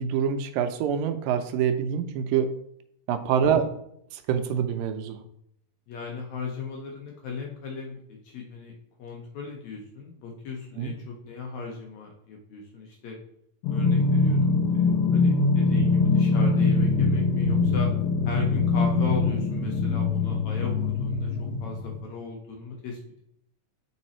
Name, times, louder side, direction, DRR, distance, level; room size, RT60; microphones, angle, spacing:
voice 1, 0.0-2.5 3.1-3.7 4.1-5.2 10.8-10.9, right 8 dB, 80° right, 8 dB, 2.2 m, -25 dB
voice 2, 5.9-13.2 13.7-17.9 18.2-23.2, left 4 dB, 70° left, 0 dB, 1.8 m, -37 dB
sound 1, 13.6-22.0, left 3 dB, 90° left, 2.5 m, -23 dB
6.8 x 4.0 x 4.3 m, 0.72 s
omnidirectional pair, 4.0 m